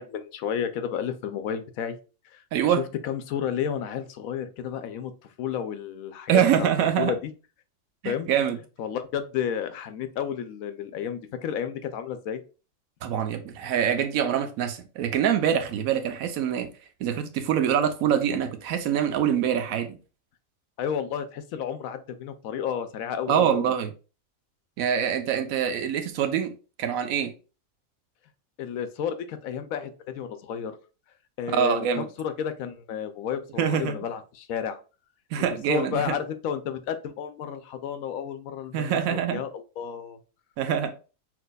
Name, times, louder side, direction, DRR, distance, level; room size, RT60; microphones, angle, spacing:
voice 1, 0.0-2.0 2.2-6.7 7.0-7.3 8.0-8.3 8.8-12.4 20.8-23.7 28.6-30.8 31.4-34.8 35.4-40.2, left 8 dB, 75° left, 1.0 m, -32 dB
voice 2, 6.3-7.1 8.0-8.6 13.0-16.7 17.0-20.0 23.3-23.9 24.8-26.5 26.8-27.3 31.5-32.1 33.6-33.9 35.3-36.2 38.7-39.4 40.6-40.9, right 9 dB, 75° right, 1.0 m, -24 dB
5.9 x 2.8 x 2.2 m
omnidirectional pair, 1.5 m